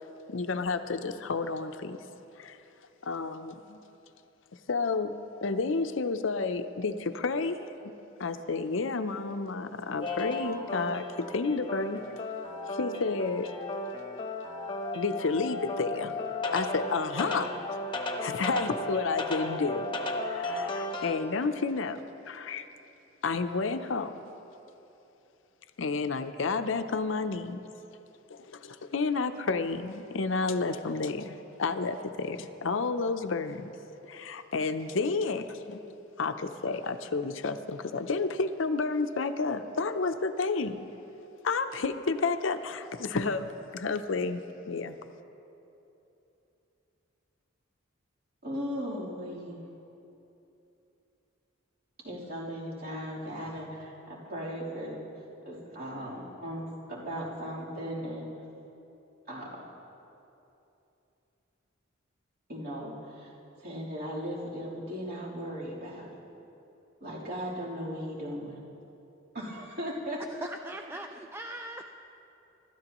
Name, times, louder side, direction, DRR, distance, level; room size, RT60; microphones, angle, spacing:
voice 1, 0.3-2.0 2.4-2.6 3.0-3.8 4.7-5.1 5.4-7.9 8.2-12.0 12.7-13.5 14.9-16.2 16.5-17.8 18.2-19.9 20.2-22.0 22.3-22.7 23.2-24.2 25.8-27.6 28.3-33.7 34.1-35.8 36.2-40.8 41.4-45.0, left 4 dB, 70° left, 9 dB, 0.6 m, -31 dB
sound 1, 10.0-21.1, left 2 dB, 25° left, 1.1 m, -35 dB
voice 2, 48.4-49.6 52.0-55.0 55.4-58.3 59.3-59.7 62.5-63.3 63.6-66.1 67.0-68.6 69.3-70.5, equal, 50° right, -7 dB, 3.5 m, -37 dB
voice 3, 70.4-71.8, right 1 dB, 10° right, 4 dB, 0.4 m, -40 dB
25.5 x 13.0 x 3.0 m, 2.9 s
head